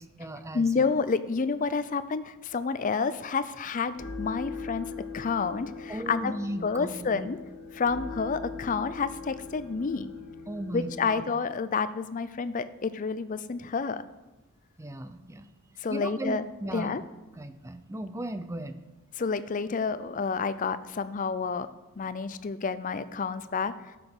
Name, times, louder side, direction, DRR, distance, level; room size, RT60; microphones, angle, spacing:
voice 1, 0.0-0.9 5.9-7.2 10.5-11.3 14.8-15.5 15.9-17.0 17.4-18.8 22.0-22.1, right 1 dB, 15° right, 10 dB, 0.5 m, -37 dB
voice 2, 0.5-4.9 5.1-6.3 6.6-7.4 7.7-10.1 10.7-14.0 15.8-16.5 16.7-17.0 19.1-21.7 22.0-24.0, left 5 dB, 35° left, 14 dB, 0.4 m, -29 dB
sound 1, 3.7-11.2, left 4 dB, 75° left, 1.3 m, -41 dB
13.0 x 5.9 x 5.4 m, 1.1 s
head